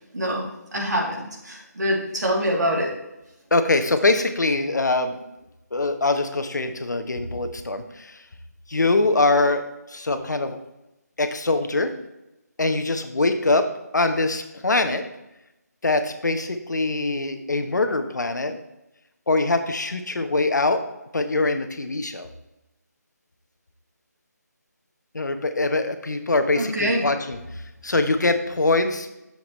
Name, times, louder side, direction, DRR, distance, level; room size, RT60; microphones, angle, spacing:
voice 1, 0.1-3.0 26.6-27.0, equal, 75° right, -2 dB, 3.1 m, -25 dB
voice 2, 3.5-5.2 5.7-8.2 8.7-9.6 9.9-10.6 11.2-11.9 12.6-13.7 13.9-15.0 15.8-18.6 19.3-20.8 21.1-22.3 25.1-29.2, left 2 dB, 85° left, 8 dB, 1.1 m, -23 dB
9.2 x 7.1 x 3.2 m, 0.94 s
figure-of-eight pair, 180°, 9 cm